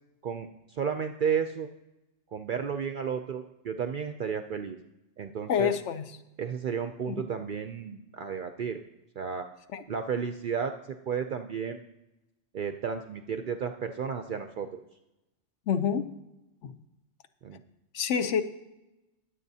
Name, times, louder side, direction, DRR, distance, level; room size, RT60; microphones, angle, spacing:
voice 1, 0.2-1.7 2.3-4.8 5.2-5.7 6.4-8.8 9.2-9.5 9.9-11.9 12.5-14.8 17.4-17.6, right 7 dB, 60° right, 7 dB, 0.5 m, -33 dB
voice 2, 5.5-6.1 7.1-7.2 9.7-9.8 15.7-16.1 16.6-16.8 17.9-18.4, left 7 dB, 70° left, 10 dB, 1.0 m, -27 dB
19.5 x 7.8 x 2.7 m, 0.95 s
omnidirectional pair, 1.3 m